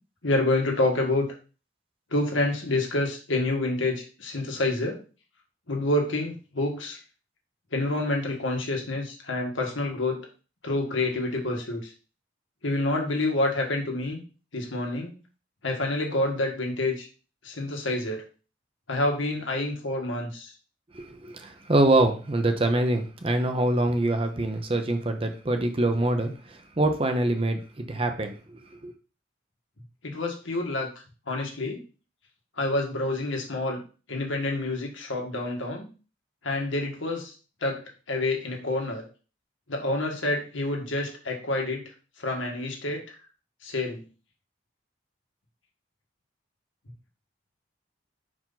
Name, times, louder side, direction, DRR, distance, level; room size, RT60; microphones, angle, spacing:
voice 1, 0.2-1.4 2.1-5.0 5.7-7.0 7.7-10.3 10.6-11.9 12.6-14.2 14.5-15.1 15.6-17.1 17.4-18.2 18.9-20.5 30.0-30.9 31.3-31.8 32.6-33.8 34.1-35.9 36.4-37.3 37.6-39.0 39.7-41.9 42.2-43.2 43.6-44.0, left 2 dB, 85° left, 1.7 m, -28 dB
voice 2, 20.9-28.9, right 1 dB, 30° right, 0.7 m, -25 dB
5.6 x 4.8 x 3.9 m
head